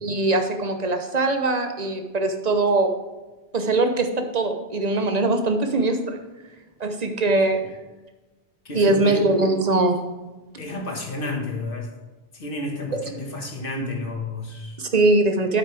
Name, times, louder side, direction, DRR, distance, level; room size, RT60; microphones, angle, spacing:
voice 1, 0.0-2.9 3.5-6.2 6.8-7.6 8.7-10.0 12.9-13.0 14.8-15.6, right 2 dB, 40° right, 6 dB, 0.9 m, -21 dB
voice 2, 8.6-9.2 10.6-11.9 12.3-14.8, left 2 dB, 50° left, 1 dB, 1.7 m, -31 dB
9.3 x 8.0 x 3.4 m, 1.2 s
omnidirectional pair, 1.2 m